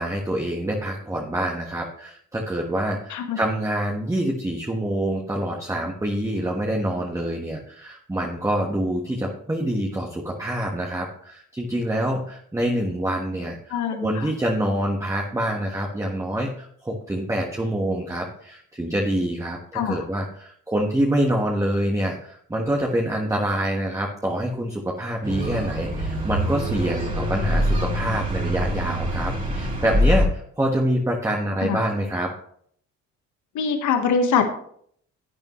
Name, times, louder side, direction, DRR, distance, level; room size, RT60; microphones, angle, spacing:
voice 1, 0.0-32.3, right 1 dB, 10° right, -1 dB, 1.4 m, -26 dB
voice 2, 13.7-14.3 19.7-20.0 31.6-31.8 33.5-34.5, left 6 dB, 75° left, 5 dB, 1.4 m, -23 dB
sound 1, 25.2-30.3, equal, 25° right, 2.8 m, -24 dB
11.5 x 8.8 x 3.1 m, 0.64 s
cardioid pair, 90°, 30 cm